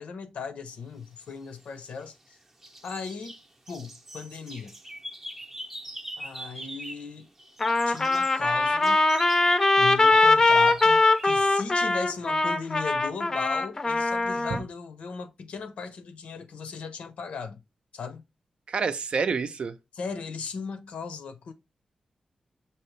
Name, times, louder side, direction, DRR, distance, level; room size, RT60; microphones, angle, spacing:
voice 1, 0.0-2.4 2.8-3.4 3.7-4.7 6.2-7.3 7.9-9.1 9.8-17.6 17.9-18.2 19.9-21.5, left 5 dB, 85° left, 0.6 m, -37 dB
sound 1, 1.5-2.3 2.6-7.1 7.4-11.4, right 1 dB, 15° right, 0.6 m, -42 dB
Trumpet, 7.6-14.6, left 3 dB, 30° left, 0.5 m, -22 dB
voice 2, 18.7-19.7, right 5 dB, 60° right, 0.5 m, -28 dB
6.0 x 2.8 x 3.1 m
wide cardioid pair, 95°, 2 cm